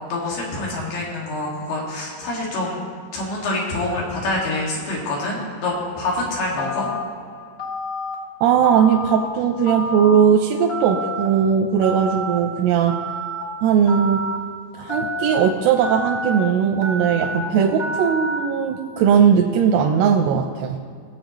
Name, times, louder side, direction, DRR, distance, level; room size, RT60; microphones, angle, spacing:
voice 1, 0.1-2.8 3.1-6.9 17.4-17.8, left 2 dB, 85° left, -3 dB, 4.1 m, -26 dB
Telephone, 6.6-7.0 7.6-8.1 8.6-9.2 9.7-10.2 10.7-11.3 11.8-12.4 12.9-13.4 13.9-14.4 14.9-15.4 15.8-16.4 16.8-17.4 17.8-18.4, equal, 35° left, 0.9 m, -28 dB
voice 2, 8.4-13.0 13.6-14.2 14.8-20.8, right 7 dB, 90° right, 3 dB, 2.7 m, -18 dB
19.5 x 7.7 x 3.0 m, 2.2 s
omnidirectional pair, 4.6 m